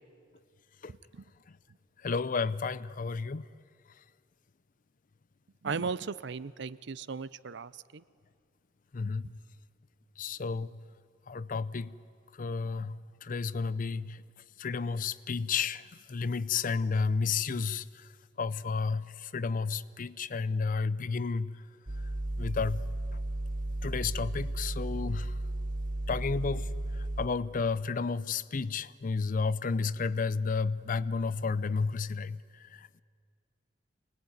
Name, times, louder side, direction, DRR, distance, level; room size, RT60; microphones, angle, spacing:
voice 1, 2.0-3.5 8.9-9.3 10.2-10.7 11.3-11.9 12.4-14.2 14.6-18.1 18.4-21.5 22.4-22.8 23.8-25.3 26.1-26.7 27.0-33.0, left 4 dB, 45° left, 17 dB, 0.5 m, -32 dB
voice 2, 5.6-8.0, right 5 dB, 65° right, 18 dB, 0.6 m, -36 dB
sound 1, 21.9-27.3, right 1 dB, 45° right, 1.8 m, -34 dB
25.0 x 19.0 x 9.6 m, 2.2 s
head